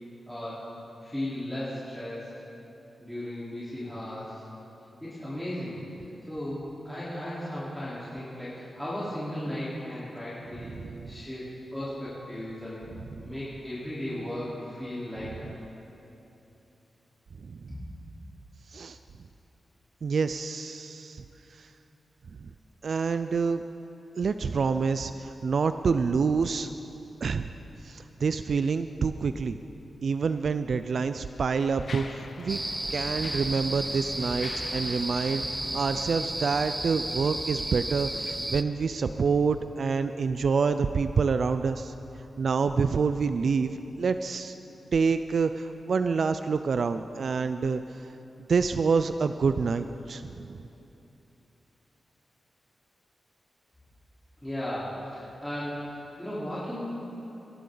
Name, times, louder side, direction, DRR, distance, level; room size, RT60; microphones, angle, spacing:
voice 1, 0.3-0.6 1.0-2.3 3.0-4.4 5.0-5.8 6.3-10.7 11.1-12.9 13.2-15.5 17.7-17.8 54.4-56.9, left 1 dB, 5° left, -11 dB, 3.7 m, -36 dB
voice 2, 10.6-11.1 13.1-13.3 17.4-17.6 18.7-19.0 20.0-21.2 21.6-21.7 22.4-22.5 22.8-23.6 24.2-26.7 27.2-27.5 27.8-29.6 30.0-32.6 32.9-35.5 35.7-41.9 42.4-44.5 44.9-48.1 48.5-50.6, right 5 dB, 65° right, 10 dB, 0.4 m, -27 dB
Mechanisms, 30.2-30.4 31.1-36.9, left 4 dB, 60° left, 0.9 m, -46 dB
sound 1, 32.5-38.6, right 1 dB, 10° right, 0.5 m, -33 dB
21.5 x 11.5 x 3.9 m, 2.9 s
cardioid pair, 75°, 0 cm